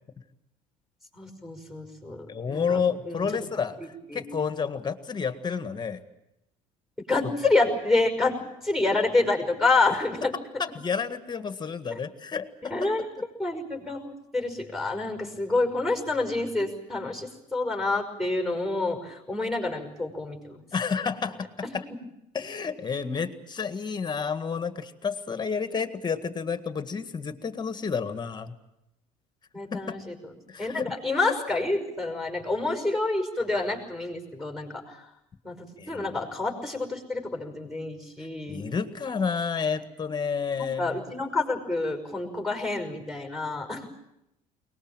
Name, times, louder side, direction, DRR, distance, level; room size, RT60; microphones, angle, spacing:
voice 1, 1.1-2.8 3.1-3.3 3.8-4.2 7.1-8.4 8.6-10.3 11.9-12.0 12.7-13.0 13.4-14.0 14.3-20.6 29.5-30.1 30.6-35.0 35.4-35.5 35.9-38.7 40.6-43.8, left 3 dB, ahead, 4 dB, 5.7 m, -28 dB
voice 2, 2.3-3.8 4.1-6.0 10.6-13.1 20.7-21.8 22.3-28.5 29.7-30.0 30.5-31.0 35.8-36.1 38.5-41.0, left 6 dB, 25° left, 10 dB, 1.8 m, -30 dB
22.0 x 20.0 x 9.1 m, 0.85 s
supercardioid pair, 85°, 16 cm